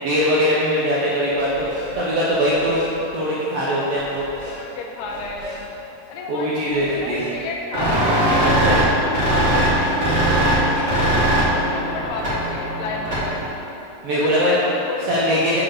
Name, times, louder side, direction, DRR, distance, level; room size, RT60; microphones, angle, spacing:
voice 1, 0.0-2.8 3.1-4.2 6.3-7.2 8.4-8.8 14.0-14.5 15.1-15.6, equal, 80° right, -7 dB, 1.4 m, -21 dB
sound 1, 1.3-2.0 2.3-3.0 4.0-4.6 5.0-5.7 6.7-7.4 8.0-8.8 9.3-12.1, right 1 dB, 30° left, 1.5 m, -38 dB
voice 2, 4.5-5.6 6.1-8.0 8.3-8.9 9.2-10.0 10.3-11.2 11.4-13.6 14.1-15.4, left 3 dB, 80° left, -1 dB, 2.4 m, -31 dB
sound 2, 7.7-13.4, right 1 dB, 40° right, 1.0 m, -20 dB
7.2 x 4.3 x 6.2 m, 3.0 s
omnidirectional pair, 3.9 m